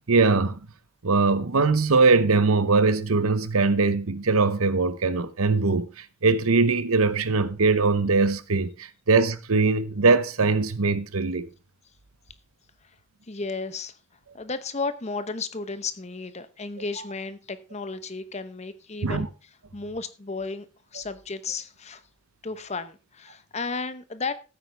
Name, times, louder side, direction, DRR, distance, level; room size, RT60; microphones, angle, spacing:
voice 1, 0.1-0.6 1.0-11.5 19.0-19.3, right 4 dB, 90° right, 0.9 m, -21 dB
voice 2, 13.3-14.0 14.3-19.3 19.7-22.0 22.4-24.3, left 4 dB, 30° left, 0.9 m, -33 dB
14.5 x 8.7 x 3.4 m
head